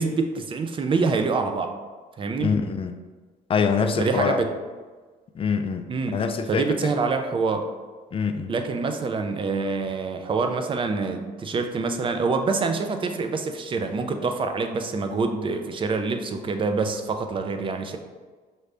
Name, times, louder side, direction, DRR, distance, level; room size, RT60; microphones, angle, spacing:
voice 1, 0.0-1.7 2.2-2.6 4.0-4.5 5.9-6.2 6.5-7.7 8.5-18.0, right 4 dB, 30° right, 6 dB, 0.5 m, -26 dB
voice 2, 2.4-3.0 3.5-4.4 5.3-6.7 8.1-8.5, left 5 dB, 35° left, 7 dB, 0.3 m, -24 dB
5.4 x 2.5 x 3.3 m, 1.4 s
cardioid pair, 110°, 17 cm